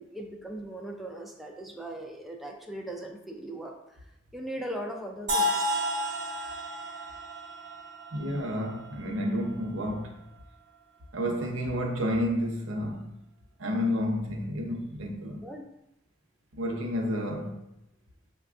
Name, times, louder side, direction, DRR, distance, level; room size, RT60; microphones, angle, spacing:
voice 1, 0.0-4.0 4.3-5.8 15.4-15.6, right 1 dB, ahead, 0.3 m, -39 dB
sound 1, 5.3-9.2, equal, 45° right, 0.9 m, -31 dB
voice 2, 8.1-10.3 11.1-13.2 13.6-15.5 16.5-17.6, equal, 90° right, 0.7 m, -30 dB
5.4 x 2.3 x 2.4 m
head